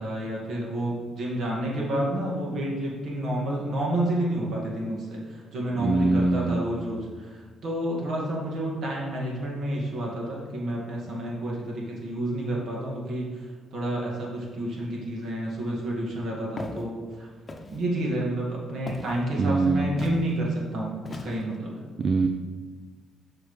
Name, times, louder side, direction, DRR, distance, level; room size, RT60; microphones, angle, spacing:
voice 1, 0.0-17.3 17.7-21.8, right 1 dB, 65° right, -3 dB, 2.1 m, -30 dB
voice 2, 5.8-6.6 19.4-19.9 22.0-22.3, right 3 dB, 45° right, 5 dB, 0.4 m, -22 dB
Walk footsteps, 16.6-16.8 17.5-17.8 18.9-19.2 20.0-20.2 21.0-21.6, left 2 dB, 25° left, 0.8 m, -37 dB
6.7 x 5.9 x 3.3 m, 1.4 s
cardioid pair, 90°, 0 cm